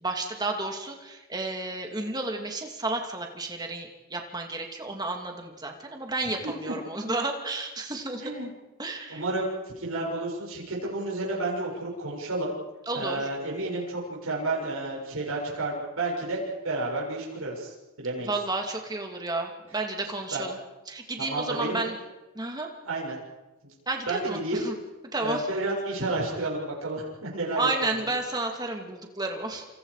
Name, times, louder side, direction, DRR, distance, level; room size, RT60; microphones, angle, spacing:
voice 1, 0.0-8.2 8.8-9.2 12.9-13.3 18.2-20.6 20.9-21.9 22.3-22.7 23.9-24.7 25.1-25.4 27.6-29.7, right 2 dB, 20° right, 3 dB, 2.6 m, -31 dB
voice 2, 9.1-12.5 12.9-18.3 20.3-20.4 21.2-21.8 22.8-23.2 23.6-23.7 24.1-24.6 25.2-27.7, right 2 dB, 75° right, -3 dB, 6.8 m, -31 dB
28.0 x 27.0 x 5.0 m, 1.1 s
head